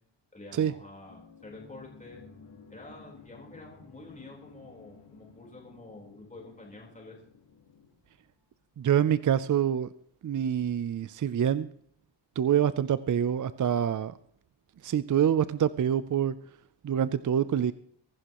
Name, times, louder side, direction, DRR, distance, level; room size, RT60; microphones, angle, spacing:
voice 1, 0.3-2.2 2.7-7.2, left 2 dB, 15° left, -2 dB, 4.0 m, -48 dB
sound 1, 1.0-8.6, left 5 dB, 70° left, 3.2 m, -54 dB
voice 2, 8.8-9.9 10.2-11.7 12.4-14.2 14.8-16.4 16.8-17.7, right 9 dB, 45° right, 14 dB, 0.5 m, -26 dB
23.5 x 11.5 x 3.0 m, 0.63 s
wide cardioid pair, 140°, 45 cm